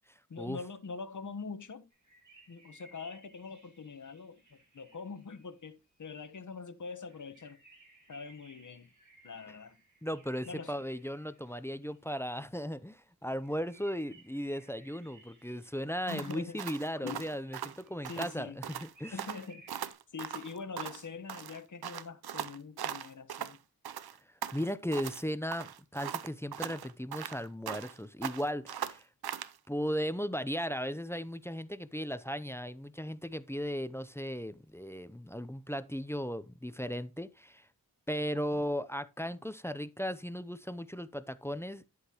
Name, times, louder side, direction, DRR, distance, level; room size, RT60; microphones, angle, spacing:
voice 1, 0.3-1.9 2.5-7.6 8.1-8.9 9.2-9.8 10.5-10.7 16.1-16.6 17.0-17.2 18.1-18.6 19.1-19.7 20.1-23.6 38.3-38.6, left 5 dB, 55° left, 1.1 m, -44 dB
sound 1, 1.9-6.3 7.0-12.1 13.4-16.2 16.7-19.9, right 3 dB, 55° right, 5.2 m, -61 dB
voice 2, 10.0-19.2 24.5-29.1 29.7-37.7 38.1-41.8, equal, 5° left, 0.5 m, -36 dB
sound 2, 16.1-18.4 18.6-18.9 19.2-21.0 21.3-23.6 23.8-25.2 25.5-28.0 28.2-29.6, right 9 dB, 80° right, 0.6 m, -40 dB
10.5 x 8.1 x 2.9 m
wide cardioid pair, 90°, 37 cm